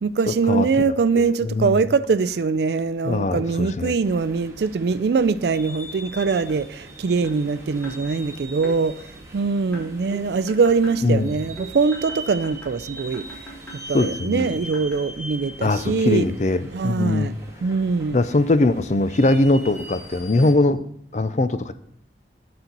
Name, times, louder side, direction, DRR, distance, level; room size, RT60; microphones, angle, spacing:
voice 1, 0.0-9.1 9.3-13.5 13.9-16.3 16.7-17.3 17.6-18.2, right 4 dB, 65° right, 15 dB, 0.4 m, -22 dB
voice 2, 1.2-1.9 3.0-3.9 11.0-11.4 13.9-14.5 15.6-17.4 18.1-20.8 21.1-21.7, left 2 dB, 40° left, 12 dB, 0.4 m, -21 dB
sound 1, 4.0-20.5, right 1 dB, 15° right, 1.6 m, -41 dB
sound 2, 6.5-6.7 7.2-7.5 7.8-8.1 8.6-8.8 9.7-11.0 11.6-15.1, right 2 dB, 10° left, 1.7 m, -41 dB
12.5 x 4.3 x 3.9 m, 0.69 s
head